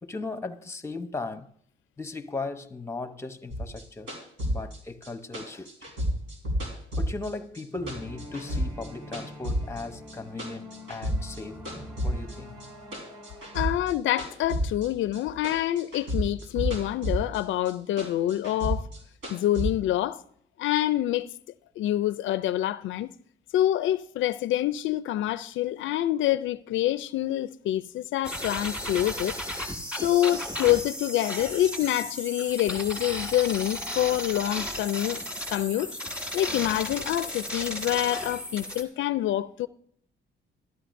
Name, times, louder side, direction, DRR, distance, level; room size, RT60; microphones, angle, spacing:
voice 1, 0.0-1.5 2.0-4.1 4.4-5.7 7.0-11.7 12.0-12.6, left 3 dB, 15° left, 0.8 m, -37 dB
sound 1, 3.5-7.6 7.9-9.8 10.1-11.4 11.7-15.2 15.4-17.4 17.7-19.7, equal, 75° right, 4.3 m, -31 dB
sound 2, 7.8-13.6, left 1 dB, 25° right, 5.1 m, -44 dB
voice 2, 13.5-18.9 19.3-20.2 20.6-21.3 21.8-23.1 23.5-29.3 30.0-35.2 35.5-35.9 36.3-39.7, left 13 dB, 75° left, 0.4 m, -26 dB
sound 3, 28.2-38.8, equal, 5° right, 1.7 m, -34 dB
13.0 x 12.5 x 2.6 m
cardioid pair, 90°, 20 cm